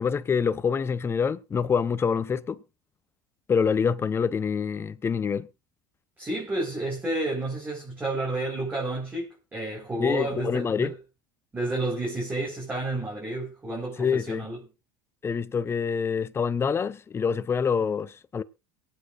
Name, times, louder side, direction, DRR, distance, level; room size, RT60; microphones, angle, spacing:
voice 1, 0.0-2.6 3.5-5.5 10.0-10.9 14.0-14.5 15.2-18.4, left 6 dB, 25° left, 0.8 m, -26 dB
voice 2, 6.2-10.9 11.5-14.6, right 2 dB, 20° right, 4.7 m, -30 dB
23.0 x 8.9 x 2.6 m
supercardioid pair, 100°, 10 cm